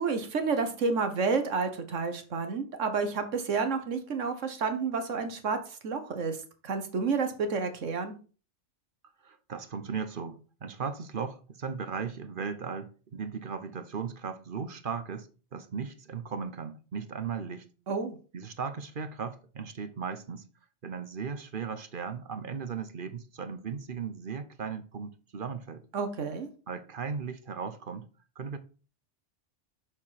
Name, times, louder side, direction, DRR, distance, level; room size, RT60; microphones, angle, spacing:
voice 1, 0.0-5.6 5.8-6.4 6.6-8.1 17.9-18.2 25.9-26.5, right 4 dB, 80° right, 1.5 m, -30 dB
voice 2, 9.2-17.6 18.3-20.4 20.8-25.8 26.7-28.1 28.4-28.6, right 6 dB, 50° right, 1.0 m, -37 dB
7.2 x 6.6 x 5.7 m
omnidirectional pair, 1.3 m